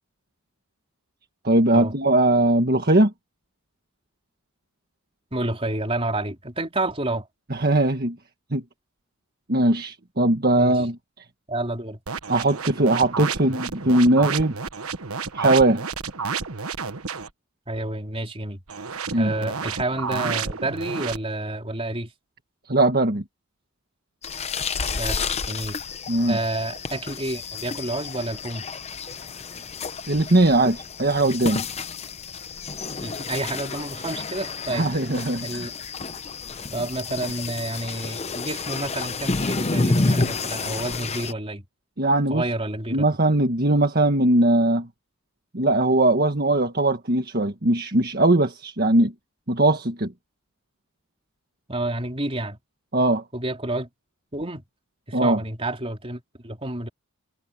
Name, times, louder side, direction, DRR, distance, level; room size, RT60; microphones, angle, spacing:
voice 1, 1.4-3.1 7.5-8.2 8.5-8.6 9.5-11.0 12.3-14.5 15.3-15.8 19.1-19.3 22.7-23.2 26.1-26.4 30.1-31.6 34.7-35.6 42.0-42.4 42.9-44.9 45.5-49.1 49.5-50.1 52.9-53.2 55.1-55.4, right 2 dB, 45° right, 1.6 m, -20 dB
voice 2, 5.3-7.3 10.5-10.8 11.5-12.0 17.7-18.6 19.2-22.1 24.9-25.2 25.5-25.8 26.3-28.6 33.0-34.9 35.4-35.7 36.7-41.6 42.3-43.1 51.7-52.6 53.3-53.9 54.3-54.6 55.1-56.9, right 2 dB, 25° right, 4.4 m, -29 dB
sound 1, 12.1-17.3 18.7-21.2, right 5 dB, 75° right, 1.3 m, -31 dB
sound 2, 24.2-41.3, left 3 dB, 30° left, 0.8 m, -30 dB
head